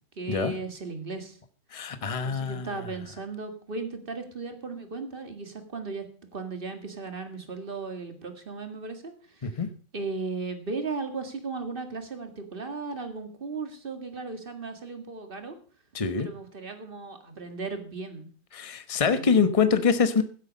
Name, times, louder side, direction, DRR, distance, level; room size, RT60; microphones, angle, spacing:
voice 1, 0.2-1.4 2.2-6.0 6.3-9.6 9.9-15.6 16.2-18.3 19.2-19.3, right 4 dB, 40° right, 7 dB, 2.1 m, -36 dB
voice 2, 1.7-2.8 9.4-9.7 15.9-16.3 18.5-20.2, left 5 dB, 25° left, 11 dB, 1.0 m, -25 dB
16.0 x 8.3 x 5.3 m, 0.43 s
omnidirectional pair, 1.4 m